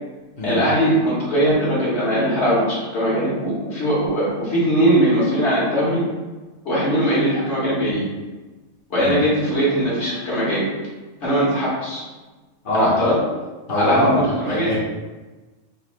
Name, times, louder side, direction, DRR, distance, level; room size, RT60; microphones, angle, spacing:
voice 1, 0.4-6.0 6.6-8.1 8.9-10.7 11.2-12.0 12.7-13.2 13.7-14.7, equal, 65° left, -7 dB, 1.5 m, -20 dB
voice 2, 13.7-14.7, left 1 dB, 45° left, -8 dB, 1.0 m, -22 dB
4.0 x 2.5 x 3.1 m, 1.2 s
omnidirectional pair, 1.3 m